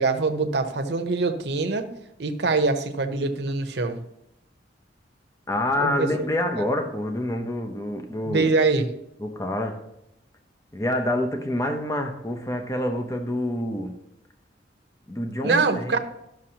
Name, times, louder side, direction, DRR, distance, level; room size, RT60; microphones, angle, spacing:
voice 1, 0.0-1.9 2.2-4.0 5.8-6.3 8.3-8.9 15.4-16.0, right 3 dB, 65° right, 6 dB, 0.8 m, -24 dB
voice 2, 5.5-8.5 9.2-9.8 10.7-14.0 15.1-16.0, left 1 dB, 20° left, 4 dB, 0.7 m, -27 dB
12.5 x 6.2 x 2.9 m, 0.84 s
head